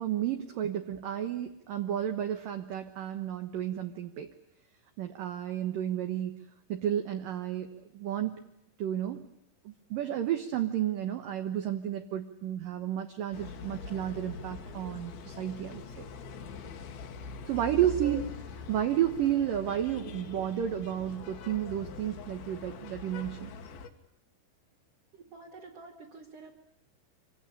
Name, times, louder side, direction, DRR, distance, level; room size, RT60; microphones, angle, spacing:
voice 1, 0.0-4.3 5.0-6.4 6.7-8.3 8.8-9.3 9.6-16.1 17.5-18.3 18.7-23.5, right 11 dB, 65° right, 6 dB, 2.2 m, -32 dB
sound 1, 13.3-23.9, left 5 dB, 60° left, 3.1 m, -43 dB
voice 2, 17.6-18.3 25.1-26.5, right 4 dB, 40° right, -1 dB, 2.7 m, -46 dB
26.5 x 17.5 x 10.0 m, 0.80 s
omnidirectional pair, 5.5 m